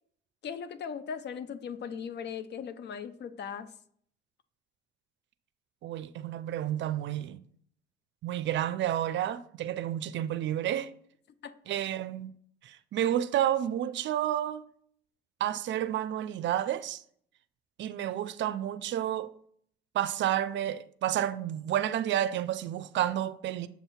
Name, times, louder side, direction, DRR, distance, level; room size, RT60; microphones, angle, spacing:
voice 1, 0.4-3.7 11.4-11.5, left 7 dB, 60° left, 0.6 m, -38 dB
voice 2, 5.8-7.4 8.2-10.9 11.7-12.3 12.6-14.6 15.4-17.0 17.8-19.3 19.9-23.7, right 11 dB, 65° right, 0.4 m, -30 dB
7.1 x 2.7 x 5.7 m
cardioid pair, 90°, 20 cm